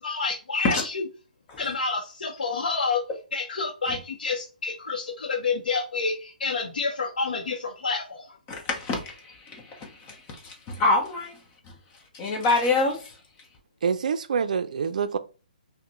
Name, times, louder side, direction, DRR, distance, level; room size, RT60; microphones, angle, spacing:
voice 1, 0.0-1.0 1.6-3.0 3.3-8.3, left 4 dB, 85° left, 0.8 m, -28 dB
voice 2, 8.5-10.2 10.4-11.4 12.1-13.1, left 3 dB, 20° left, 0.8 m, -26 dB
voice 3, 13.8-15.2, right 6 dB, 60° right, 0.5 m, -26 dB
5.6 x 2.1 x 3.0 m
hypercardioid pair, 165°, 5 cm